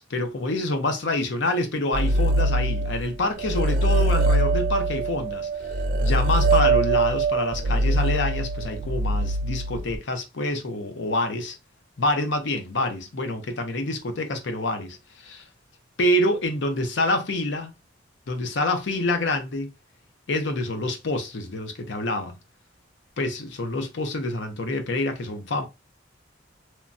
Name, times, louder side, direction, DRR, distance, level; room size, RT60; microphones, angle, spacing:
voice 1, 0.0-5.5 6.0-11.6 12.0-15.4 16.0-17.7 18.3-19.7 20.3-22.4 23.2-25.7, left 1 dB, 75° left, 0.6 m, -27 dB
sound 1, 1.9-3.1 3.4-10.0, right 2 dB, 50° right, 0.4 m, -23 dB
3.1 x 2.1 x 2.5 m
head